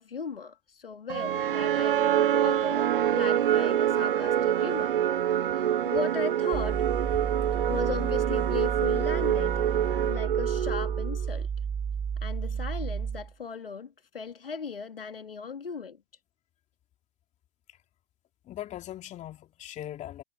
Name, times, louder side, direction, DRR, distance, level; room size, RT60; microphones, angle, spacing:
voice 1, 0.0-4.9 5.4-6.9 7.7-9.7 10.1-11.5 12.2-16.0, left 6 dB, 75° left, 2.7 m, -37 dB
sound 1, 1.1-11.3, right 10 dB, 65° right, 1.1 m, -26 dB
sound 2, 6.5-13.3, right 7 dB, 15° right, 3.1 m, -32 dB
voice 2, 18.4-20.2, left 13 dB, 25° left, 3.0 m, -40 dB
figure-of-eight pair, 105°, 29 cm